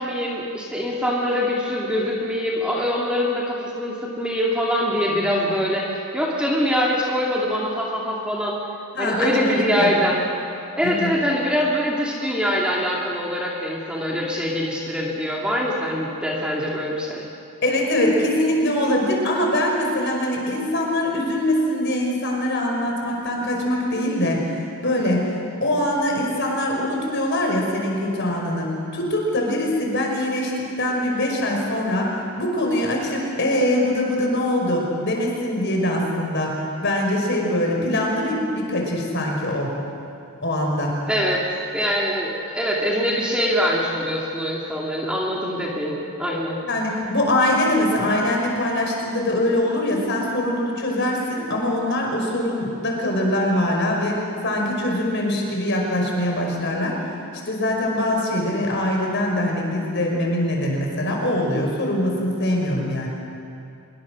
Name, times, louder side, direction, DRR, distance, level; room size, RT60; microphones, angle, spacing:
voice 1, 0.0-8.6 9.0-10.2 10.8-17.3 41.1-41.4 41.7-46.6, equal, 5° right, -4 dB, 2.6 m, -23 dB
voice 2, 8.9-9.9 10.8-11.1 17.6-24.5 24.8-25.3 25.6-30.5 30.8-39.8 40.4-41.0 46.7-54.2 54.4-57.0 57.5-63.1, left 1 dB, 55° left, 0 dB, 5.3 m, -23 dB
25.0 x 22.5 x 6.4 m, 2.6 s
head